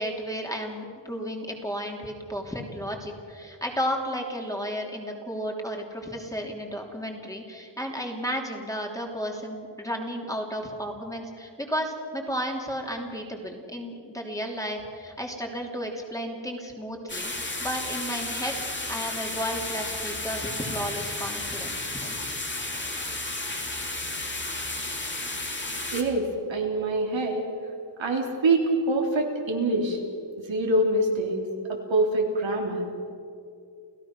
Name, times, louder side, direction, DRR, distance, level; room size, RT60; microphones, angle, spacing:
voice 1, 0.0-18.6 18.9-22.3, equal, 5° left, 1 dB, 3.0 m, -33 dB
sound 1, 17.1-26.0, left 2 dB, 25° left, 2.7 m, -33 dB
voice 2, 25.9-27.4 28.0-30.0 30.4-31.4 31.7-32.9, right 2 dB, 85° right, 0 dB, 3.5 m, -25 dB
29.5 x 16.5 x 6.1 m, 2.5 s
wide cardioid pair, 120°, 45 cm